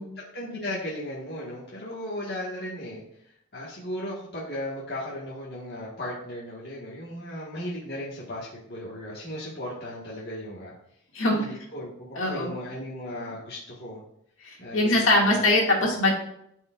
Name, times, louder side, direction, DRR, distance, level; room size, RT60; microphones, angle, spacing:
voice 1, 0.2-10.7 11.3-14.0 14.6-15.4, left 1 dB, 50° left, -6 dB, 1.6 m, -36 dB
voice 2, 12.2-12.5 14.4-16.1, left 2 dB, 70° left, -2 dB, 2.2 m, -22 dB
12.5 x 4.7 x 2.5 m, 0.74 s
head